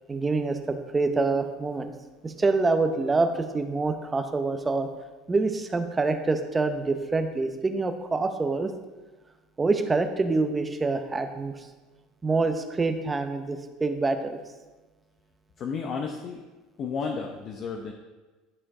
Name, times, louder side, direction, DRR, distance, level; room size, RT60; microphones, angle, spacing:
voice 1, 0.1-1.9 2.2-4.9 5.3-8.7 9.6-11.5 12.2-14.4, right 3 dB, 15° right, 7 dB, 0.7 m, -26 dB
voice 2, 15.6-16.4 16.8-17.9, left 5 dB, 40° left, 2 dB, 0.7 m, -32 dB
11.0 x 5.1 x 3.7 m, 1.2 s
cardioid pair, 135°, 0 cm